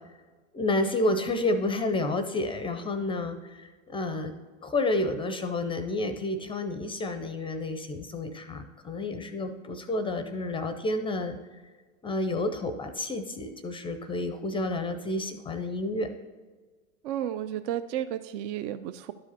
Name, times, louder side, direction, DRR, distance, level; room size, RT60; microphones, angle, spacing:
voice 1, 0.5-4.3 4.6-11.4 12.0-16.1, left 2 dB, 15° left, 9 dB, 0.4 m, -30 dB
voice 2, 17.0-19.1, right 11 dB, 60° right, 12 dB, 0.5 m, -32 dB
12.0 x 4.8 x 4.1 m, 1.4 s
hypercardioid pair, 105°, 42 cm